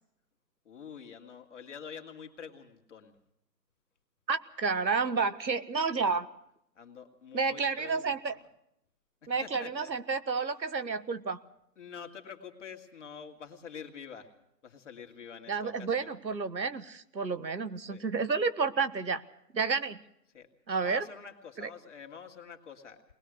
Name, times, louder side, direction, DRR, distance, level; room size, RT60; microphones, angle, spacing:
voice 1, 0.6-3.1 6.8-8.4 9.2-9.9 11.8-14.3 14.6-16.1 17.8-18.1 20.3-20.5 20.8-23.0, left 6 dB, 45° left, 4 dB, 2.5 m, -47 dB
voice 2, 4.3-6.3 7.3-8.3 9.3-11.4 15.5-19.2 19.5-20.0 20.7-21.0 21.6-21.7, right 4 dB, 90° right, 12 dB, 1.6 m, -30 dB
21.5 x 20.5 x 6.4 m, 0.78 s
figure-of-eight pair, 160°, 50 cm